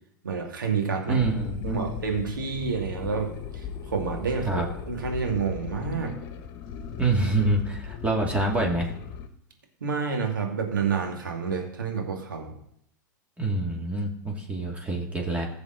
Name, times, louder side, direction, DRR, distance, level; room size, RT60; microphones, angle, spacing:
voice 1, 0.2-1.2 1.6-6.1 9.8-12.5, right 5 dB, 85° right, 2 dB, 2.3 m, -29 dB
voice 2, 1.1-1.9 4.5-4.7 7.0-8.9 13.4-15.5, right 2 dB, 10° right, 0 dB, 2.6 m, -26 dB
sound 1, 1.2-9.3, left 7 dB, 45° left, 1.4 m, -38 dB
15.5 x 6.9 x 4.0 m, 0.71 s
hypercardioid pair, 100°, 11 cm